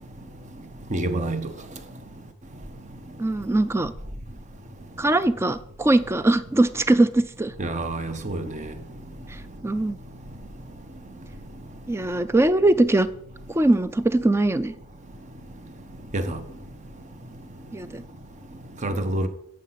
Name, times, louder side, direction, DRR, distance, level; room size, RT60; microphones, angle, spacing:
voice 1, 0.9-1.5 7.6-8.7 16.1-16.4 18.8-19.3, right 1 dB, 35° right, 0.8 m, -27 dB
voice 2, 3.2-3.9 5.0-7.5 9.6-10.0 11.9-13.1 13.5-14.7 17.7-18.0, right 2 dB, 10° right, 0.3 m, -21 dB
8.3 x 6.5 x 5.8 m
head